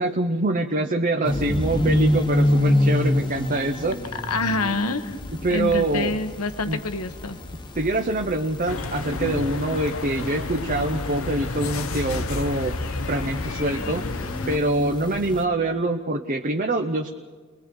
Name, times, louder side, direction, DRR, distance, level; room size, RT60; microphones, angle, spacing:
voice 1, 0.0-4.1 5.4-6.1 6.7-6.8 7.7-12.8 13.1-14.1 14.5-17.1, right 2 dB, 35° right, 4 dB, 0.8 m, -25 dB
sound 1, 1.2-15.4, left 1 dB, 20° left, 1.2 m, -28 dB
voice 2, 4.3-5.2 5.5-7.4, left 3 dB, 85° left, 8 dB, 1.3 m, -26 dB
sound 2, 8.7-14.6, left 3 dB, 65° left, 0.8 m, -31 dB
30.0 x 21.5 x 4.7 m, 1.4 s
head